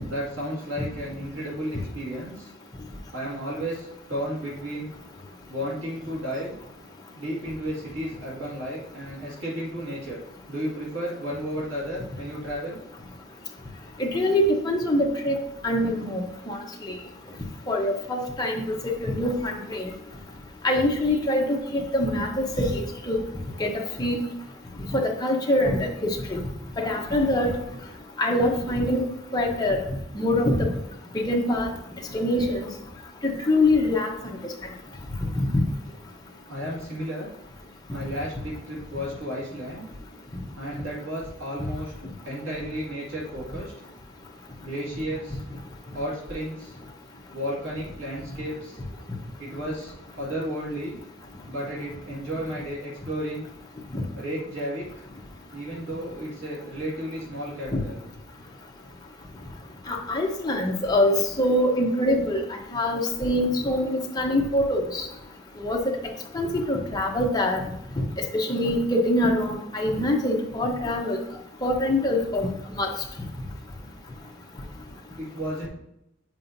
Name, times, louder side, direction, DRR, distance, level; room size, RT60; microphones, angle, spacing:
voice 1, 0.0-2.5 3.1-4.9 5.5-6.5 7.1-10.2 10.5-12.8 36.5-37.3 37.9-39.9 40.6-41.9 42.2-43.7 44.6-45.4 45.9-46.8 47.3-48.7 49.4-51.0 51.5-53.5 54.1-55.0 55.5-58.0 75.2-75.7, equal, 70° right, -5 dB, 1.9 m, -33 dB
voice 2, 14.0-15.4 15.6-16.9 17.7-19.9 20.6-23.2 23.6-23.7 24.0-24.2 24.9-26.4 26.8-27.6 28.2-29.0 29.3-29.8 30.1-30.7 31.3-31.7 32.1-32.7 33.2-34.1 35.4-35.5 53.9-54.0 57.7-57.8 59.9-62.4 62.7-65.1 65.6-65.9 66.3-67.6 68.3-71.2 71.6-72.9, left 1 dB, 20° left, 0 dB, 0.9 m, -24 dB
7.5 x 5.0 x 2.7 m, 0.83 s
head